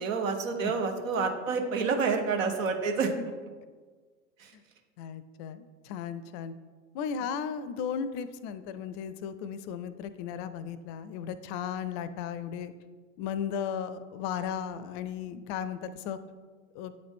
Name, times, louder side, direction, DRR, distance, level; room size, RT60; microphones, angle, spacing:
voice 1, 0.0-3.1, right 5 dB, 75° right, 5 dB, 0.9 m, -28 dB
voice 2, 5.0-6.5 6.9-12.7 13.2-16.2 16.7-16.9, left 7 dB, 50° left, 13 dB, 0.5 m, -35 dB
8.6 x 3.9 x 3.5 m, 1.5 s
hypercardioid pair, 75°, 39 cm